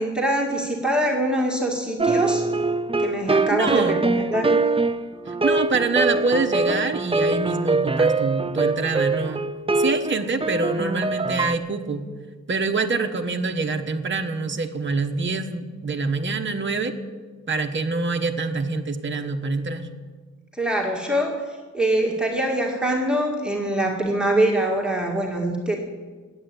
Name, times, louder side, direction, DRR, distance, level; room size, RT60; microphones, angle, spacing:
voice 1, 0.0-2.4 3.0-4.5 20.5-21.4 21.7-25.8, right 1 dB, 5° right, 0 dB, 2.0 m, -23 dB
sound 1, 2.0-11.5, right 3 dB, 20° right, 0.5 m, -23 dB
voice 2, 3.5-4.0 5.4-9.4 9.8-12.1 12.5-16.9 17.5-19.9, right 3 dB, 40° right, 4 dB, 1.1 m, -25 dB
16.0 x 10.0 x 8.4 m, 1.4 s
wide cardioid pair, 130°, 31 cm